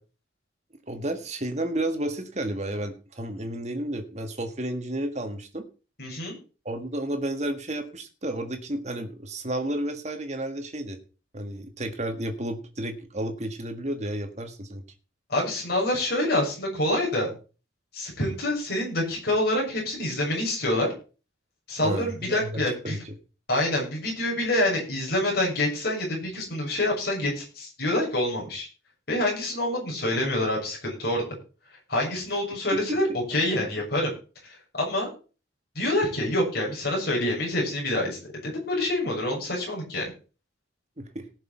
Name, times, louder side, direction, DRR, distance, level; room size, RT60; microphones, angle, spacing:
voice 1, 0.9-5.7 6.6-11.0 11.3-14.8 21.8-23.1 32.7-33.0 33.5-33.6 41.0-41.2, right 1 dB, 35° right, 6 dB, 1.7 m, -32 dB
voice 2, 6.0-6.3 15.3-17.3 17.9-20.9 21.7-23.0 23.5-28.7 29.1-31.2 31.9-33.0 33.3-34.1 34.4-35.1 35.8-40.0, left 1 dB, 50° left, -3 dB, 7.0 m, -26 dB
18.5 x 6.7 x 4.5 m, 0.35 s
head